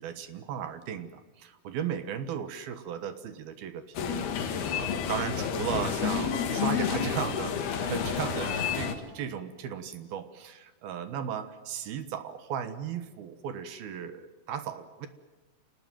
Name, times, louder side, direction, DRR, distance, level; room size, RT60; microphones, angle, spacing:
voice 1, 0.0-15.1, right 8 dB, 70° right, 10 dB, 3.0 m, -36 dB
sound 1, 4.0-9.0, left 7 dB, 70° left, 3.7 m, -30 dB
28.0 x 19.0 x 9.2 m, 1.1 s
omnidirectional pair, 4.9 m